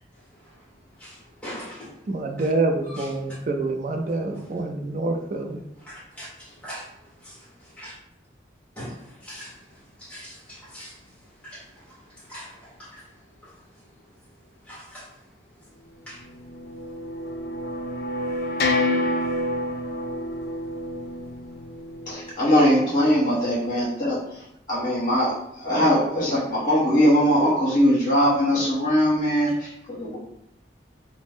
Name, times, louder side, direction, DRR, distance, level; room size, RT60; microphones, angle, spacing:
voice 1, 1.0-1.9 2.4-2.5 2.8-3.4 5.8-6.9 7.2-7.9 8.8-9.6 10.0-11.0 11.4-13.0 13.4-13.5 14.6-15.0 16.1-16.2, equal, 5° left, -8 dB, 1.1 m, -42 dB
voice 2, 2.1-5.6, right 2 dB, 45° right, 4 dB, 0.3 m, -26 dB
sound 1, 16.3-22.3, left 1 dB, 55° left, 0.4 m, -28 dB
voice 3, 22.1-24.2 24.7-25.3 25.6-30.2, equal, 25° left, -9 dB, 1.3 m, -21 dB
2.5 x 2.1 x 3.5 m, 0.80 s
head